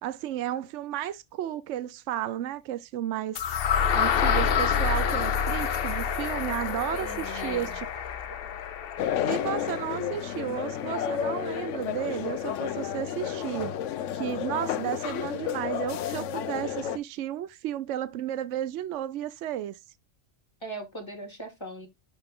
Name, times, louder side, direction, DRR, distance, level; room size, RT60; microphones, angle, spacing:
voice 1, 0.0-3.4 3.9-7.9 9.2-13.8 14.1-19.8, right 11 dB, 80° right, 0.9 m, -33 dB
sound 1, 3.4-11.3, left 7 dB, 55° left, 0.8 m, -28 dB
voice 2, 6.9-7.8 20.6-21.9, right 1 dB, 20° left, 2.7 m, -38 dB
sound 2, 9.0-17.0, left 9 dB, 85° left, 1.0 m, -31 dB
6.6 x 5.7 x 3.7 m
omnidirectional pair, 1.2 m